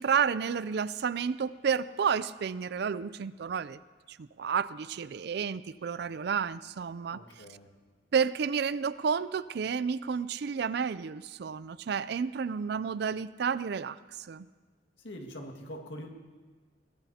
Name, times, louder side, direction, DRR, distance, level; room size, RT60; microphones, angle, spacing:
voice 1, 0.0-3.8 4.1-7.2 8.1-14.5, right 6 dB, 60° right, 17 dB, 0.4 m, -31 dB
voice 2, 7.1-7.7 15.0-16.1, equal, 75° left, 2 dB, 1.9 m, -43 dB
22.5 x 18.0 x 2.8 m, 1.4 s
head